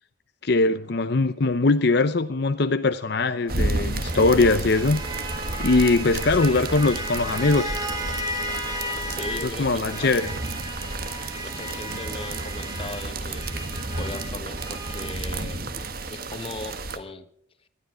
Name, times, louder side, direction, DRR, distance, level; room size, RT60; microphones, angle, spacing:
voice 1, 0.4-5.3 5.6-7.7 9.4-10.3, left 3 dB, 55° left, 10 dB, 0.7 m, -21 dB
sound 1, 2.9-9.6 9.9-15.2, equal, 20° right, 3.2 m, -35 dB
sound 2, 3.5-17.0, right 2 dB, 50° right, 1.4 m, -31 dB
voice 2, 9.1-10.2 11.4-13.5 14.0-17.3, left 2 dB, 30° left, 11 dB, 1.1 m, -38 dB
19.0 x 13.0 x 5.0 m, 0.66 s
head